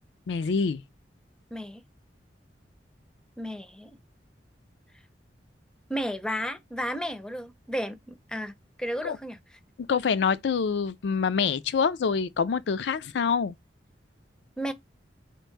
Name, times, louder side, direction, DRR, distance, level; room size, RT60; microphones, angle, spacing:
voice 1, 0.3-0.8 9.0-9.2 9.8-13.5, left 5 dB, 70° left, 0.4 m, -26 dB
voice 2, 1.5-1.8 3.4-4.0 5.9-9.4 14.6-14.7, equal, 5° left, 0.5 m, -33 dB
4.5 x 2.5 x 4.5 m
head